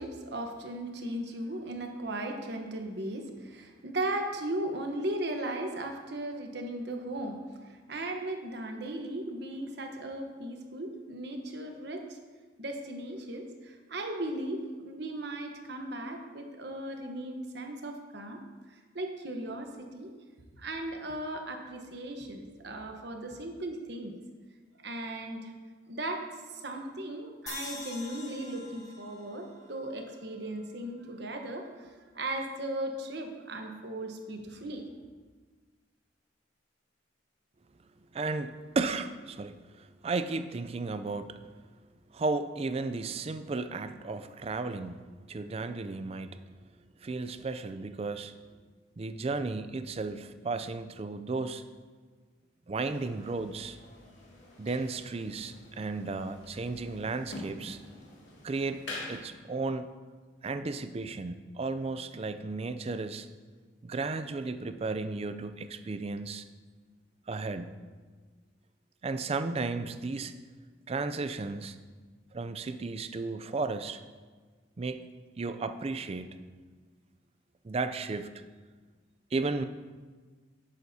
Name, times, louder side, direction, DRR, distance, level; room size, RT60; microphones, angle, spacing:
voice 1, 0.0-7.4 7.6-12.2 12.6-18.4 18.7-20.1 20.6-24.1 24.8-25.5 25.9-34.9, right 1 dB, 60° right, 3 dB, 1.0 m, -37 dB
sound 1, 27.5-30.7, left 2 dB, 20° left, 1.2 m, -45 dB
voice 2, 38.1-41.4 42.1-45.0 45.3-46.4 47.0-48.3 49.0-51.6 52.7-53.8 54.6-57.8 58.4-58.8 59.1-59.9 60.4-63.3 63.8-66.4 67.3-67.8 69.0-70.3 70.9-71.8 72.3-74.0 74.8-75.0 75.4-76.4 77.6-78.3 79.3-79.6, right 3 dB, 30° right, 11 dB, 0.4 m, -34 dB
sound 2, 52.8-59.2, left 2 dB, 70° left, 2.2 m, -46 dB
11.0 x 8.9 x 2.8 m, 1.4 s
head